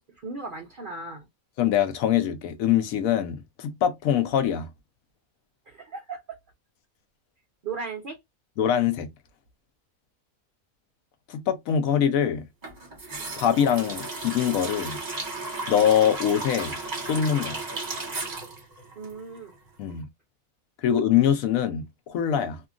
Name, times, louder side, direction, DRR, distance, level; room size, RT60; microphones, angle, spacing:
voice 1, 0.2-1.3 5.7-6.4 7.6-8.2 19.0-19.5, right 4 dB, 60° right, 0.5 m, -36 dB
voice 2, 1.6-4.7 8.6-9.1 11.3-12.4 13.4-15.0 15.7-16.8 17.1-17.6 19.8-20.1 20.8-22.6, left 9 dB, 75° left, 1.0 m, -23 dB
sound 1, 12.6-19.6 19.9-20.0, right 3 dB, 35° right, 1.0 m, -35 dB
2.8 x 2.4 x 2.3 m
omnidirectional pair, 1.5 m